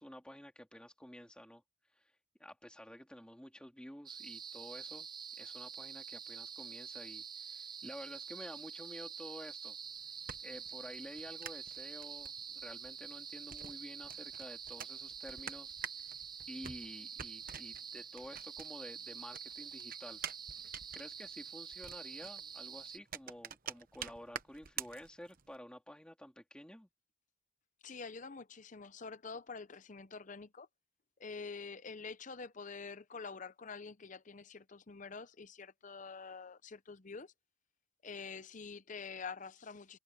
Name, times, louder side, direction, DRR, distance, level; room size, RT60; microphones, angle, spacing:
voice 1, 0.0-1.6 1.9-2.0 2.4-5.1 5.4-9.8 10.4-16.2 16.5-20.2 20.9-26.9, equal, 5° left, 3.2 m, -51 dB
sound 1, 4.1-23.0, right 7 dB, 20° right, 0.4 m, -47 dB
sound 2, 9.8-19.0 19.3-25.6, right 8 dB, 40° right, 1.0 m, -48 dB
voice 2, 27.8-30.7 31.2-37.3 38.0-40.0, left 4 dB, 35° left, 0.7 m, -47 dB
head